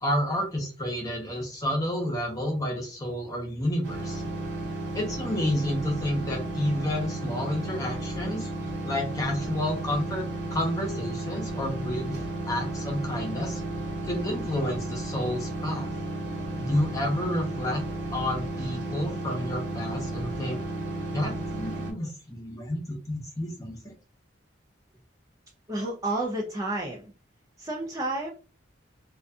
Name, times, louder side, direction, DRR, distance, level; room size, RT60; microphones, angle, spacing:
voice 1, 0.0-4.2 4.9-8.5 8.8-10.2 10.5-12.2 12.5-13.6 14.0-15.9 16.6-17.8 18.1-20.6 21.1-23.8, left 1 dB, 15° left, -1 dB, 0.7 m, -30 dB
sound 1, 3.8-21.9, right 1 dB, 65° right, 0.8 m, -33 dB
voice 2, 25.7-27.1 27.6-28.3, right 2 dB, 15° right, -2 dB, 0.4 m, -30 dB
2.5 x 2.4 x 2.2 m, 0.34 s
head